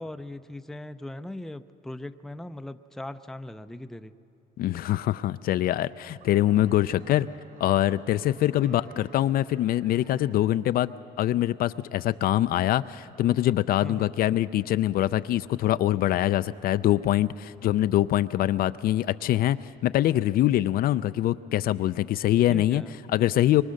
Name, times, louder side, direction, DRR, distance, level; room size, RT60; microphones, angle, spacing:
voice 1, 0.0-4.1 8.5-9.2 13.8-14.1 22.5-22.9, left 1 dB, ahead, 10 dB, 0.5 m, -39 dB
voice 2, 4.6-7.3 7.6-22.8 23.1-23.6, left 13 dB, 60° left, 14 dB, 0.4 m, -24 dB
Laughter / Clapping / Crowd, 5.7-10.5 10.8-11.3 11.9-12.0, right 3 dB, 60° right, 5.4 m, -57 dB
24.0 x 23.0 x 6.4 m, 2.7 s
cardioid pair, 110°, 17 cm